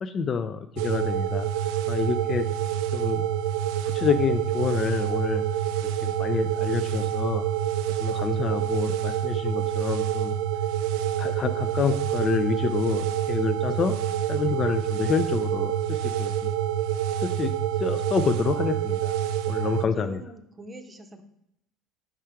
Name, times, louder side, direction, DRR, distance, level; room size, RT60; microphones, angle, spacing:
voice 1, 0.0-1.5 1.9-2.5 2.9-3.2 3.9-5.4 6.0-7.4 8.0-10.4 11.2-14.0 14.3-16.5 17.2-17.5 17.8-19.2 19.5-20.2, left 6 dB, 35° left, 9 dB, 0.3 m, -28 dB
sound 1, 0.8-19.8, right 10 dB, 80° right, 0.3 m, -27 dB
voice 2, 19.6-21.2, right 2 dB, 20° right, 6 dB, 0.7 m, -43 dB
4.9 x 4.6 x 4.4 m, 0.81 s
supercardioid pair, 110°, 0 cm